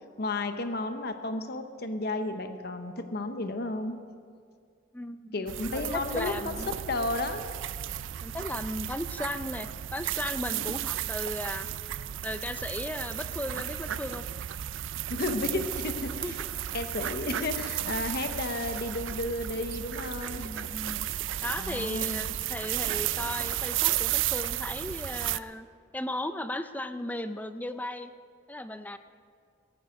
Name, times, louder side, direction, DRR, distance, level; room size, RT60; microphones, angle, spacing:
voice 1, 0.2-4.0 5.3-6.6 6.9-7.4 10.5-10.6 15.1-16.4 16.7-20.5 21.6-22.3, left 2 dB, 55° left, 8 dB, 0.9 m, -33 dB
voice 2, 4.9-6.7 8.2-11.7 12.2-14.2 16.2-16.3 20.3-21.1 21.4-25.7 25.9-28.1 28.5-29.0, left 1 dB, 10° left, 10 dB, 0.5 m, -36 dB
sound 1, 5.5-25.4, right 12 dB, 70° right, 0.4 m, -33 dB
17.0 x 13.5 x 5.2 m, 2.2 s
head